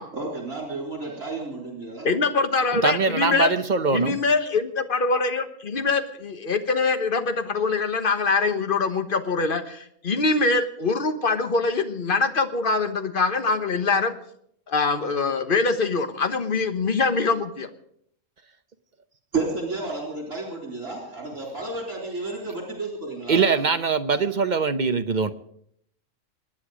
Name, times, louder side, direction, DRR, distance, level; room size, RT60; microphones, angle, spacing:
voice 1, 0.1-2.1 19.3-23.7, right 3 dB, 70° right, 0 dB, 4.2 m, -31 dB
voice 2, 2.0-3.5 3.9-14.2 14.7-17.7, left 4 dB, 45° left, 9 dB, 1.4 m, -23 dB
voice 3, 2.7-4.2 23.3-25.3, right 5 dB, 40° right, 10 dB, 0.8 m, -22 dB
26.0 x 10.0 x 5.0 m, 0.69 s
omnidirectional pair, 1.3 m